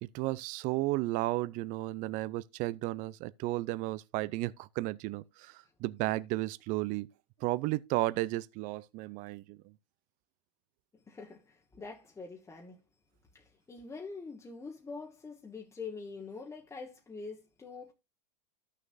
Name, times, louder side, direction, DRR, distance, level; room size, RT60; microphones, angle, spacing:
voice 1, 0.0-7.1 7.4-9.7, right 18 dB, 40° right, 0.5 m, -33 dB
voice 2, 10.9-12.8 13.3-17.9, left 4 dB, 15° left, 1.3 m, -45 dB
13.5 x 6.5 x 2.6 m
hypercardioid pair, 110°, 21 cm